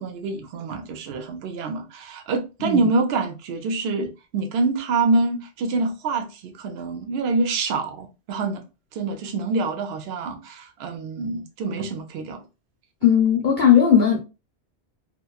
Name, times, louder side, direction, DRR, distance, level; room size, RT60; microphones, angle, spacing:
voice 1, 0.0-8.6 8.9-12.4, right 3 dB, 65° right, 0.8 m, -26 dB
voice 2, 13.0-14.2, left 8 dB, 50° left, 0.7 m, -17 dB
2.8 x 2.2 x 2.3 m
omnidirectional pair, 1.2 m